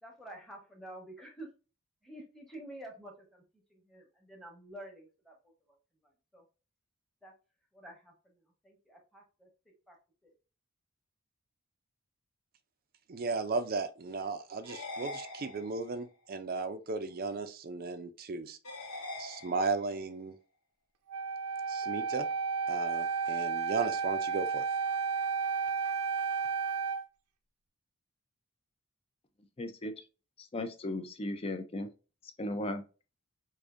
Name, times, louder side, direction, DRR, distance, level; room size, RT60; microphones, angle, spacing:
voice 1, 0.0-1.5 2.0-3.4 3.7-5.8 6.0-6.4 7.2-7.3 7.7-9.5 9.9-10.0 10.2-10.3, right 1 dB, ahead, 1.0 m, -50 dB
voice 2, 13.1-18.6 19.2-20.4 21.7-22.3 22.7-24.6, right 4 dB, 40° right, 0.4 m, -35 dB
sound 1, 14.6-16.1 18.6-20.1, left 2 dB, 75° left, 0.9 m, -43 dB
Wind instrument woodwind instrument, 21.1-27.0, right 5 dB, 85° right, 0.6 m, -32 dB
voice 3, 29.6-29.9 30.4-31.9 32.4-32.8, left 1 dB, 25° left, 0.4 m, -36 dB
4.8 x 2.6 x 2.5 m
head